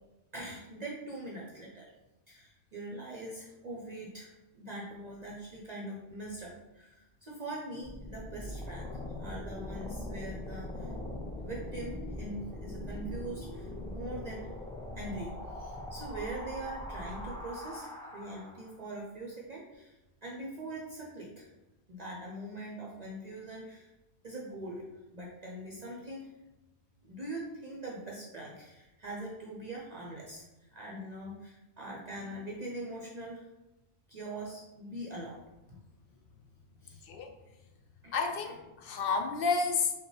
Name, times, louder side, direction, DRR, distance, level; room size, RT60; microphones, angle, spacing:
voice 1, 0.3-1.9 2.3-8.8 9.1-10.9 11.4-14.5 15.0-19.9 20.2-21.5 21.9-23.9 24.2-24.8 25.1-26.3 27.0-33.4 34.1-35.4 35.7-35.8 36.8-37.0 38.0-38.1 38.4-38.5, right 1 dB, 45° right, -3 dB, 0.6 m, -42 dB
sound 1, 7.8-18.8, left 1 dB, 5° left, 0.5 m, -41 dB
voice 2, 38.1-39.9, left 4 dB, 65° left, 3 dB, 0.7 m, -30 dB
5.2 x 2.3 x 3.1 m, 1.0 s
omnidirectional pair, 1.1 m